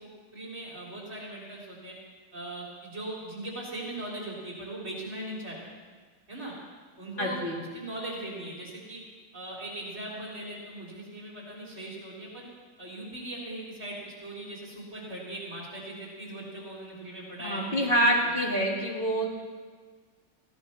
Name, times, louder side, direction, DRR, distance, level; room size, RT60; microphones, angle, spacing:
voice 1, 0.0-1.9 2.3-5.7 6.3-6.5 7.0-7.4 7.7-9.0 9.3-12.5 12.8-18.3, right 1 dB, 35° right, -4 dB, 3.9 m, -39 dB
voice 2, 7.2-7.6 17.4-19.3, equal, 30° left, -3 dB, 2.9 m, -26 dB
17.5 x 15.5 x 4.4 m, 1.5 s
omnidirectional pair, 1.9 m